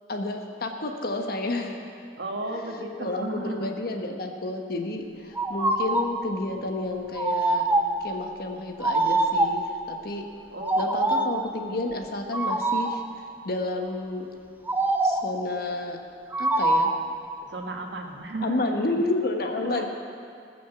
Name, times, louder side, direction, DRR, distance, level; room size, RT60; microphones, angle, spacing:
voice 1, 0.1-2.1 3.0-7.7 8.0-10.2 10.8-14.3 15.0-16.0 16.4-16.9 18.4-19.9, left 2 dB, 60° left, 3 dB, 1.2 m, -30 dB
voice 2, 2.2-3.7 10.5-11.3 17.4-19.0 19.6-19.9, right 2 dB, 85° right, 2 dB, 1.5 m, -34 dB
sound 1, 5.4-6.2 7.2-8.1 8.8-9.7 10.6-11.5 12.3-13.0 14.7-15.4 16.3-17.1, right 2 dB, 10° right, 0.7 m, -24 dB
19.0 x 6.4 x 7.0 m, 2.3 s
head